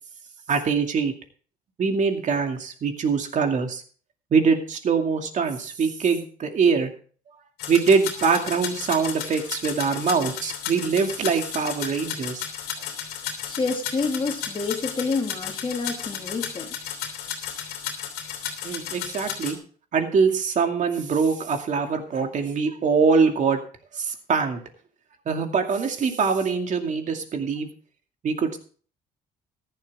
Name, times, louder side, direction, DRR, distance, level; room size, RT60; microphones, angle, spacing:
voice 1, 0.5-1.1 1.8-3.8 4.3-6.9 7.7-12.4 18.6-19.6 19.9-23.6 23.9-24.6 25.3-27.7 28.2-28.6, right 5 dB, 45° right, 5 dB, 2.4 m, -23 dB
sound 1, 7.6-19.5, left 9 dB, 90° left, 3.1 m, -34 dB
voice 2, 13.5-16.7, left 4 dB, 30° left, 3 dB, 2.5 m, -28 dB
14.5 x 11.5 x 3.6 m, 0.42 s
cardioid pair, 110°, 17 cm